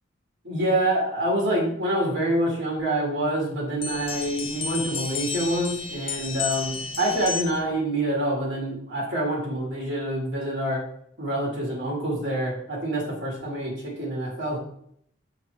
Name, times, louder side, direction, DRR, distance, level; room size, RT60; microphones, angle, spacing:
voice 1, 0.4-10.8 11.2-14.6, right 1 dB, 60° right, -2 dB, 1.9 m, -26 dB
sound 1, 3.8-7.7, left 5 dB, 30° left, 0.6 m, -32 dB
6.0 x 5.7 x 3.3 m, 0.69 s
head